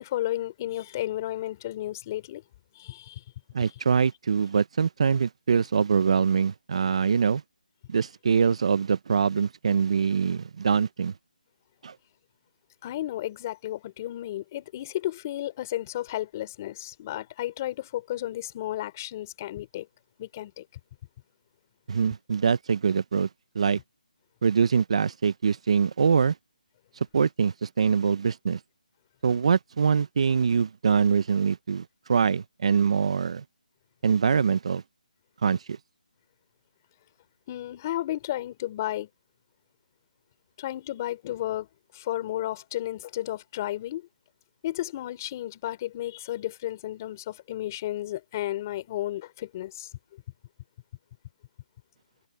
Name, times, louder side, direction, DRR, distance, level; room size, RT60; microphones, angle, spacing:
voice 1, 0.0-2.4 2.8-3.2 3.6-3.7 12.8-19.9 20.2-20.6 37.5-39.1 40.6-41.7 41.9-44.1 44.6-50.2, left 14 dB, 25° left, 3.6 m, -33 dB
voice 2, 3.5-7.4 7.9-11.1 11.8-12.0 21.9-23.3 23.5-23.8 24.4-26.4 27.1-28.6 29.2-33.4 34.0-34.8 35.4-35.8, right 6 dB, 45° right, 0.6 m, -24 dB
hypercardioid pair, 170°, 4 cm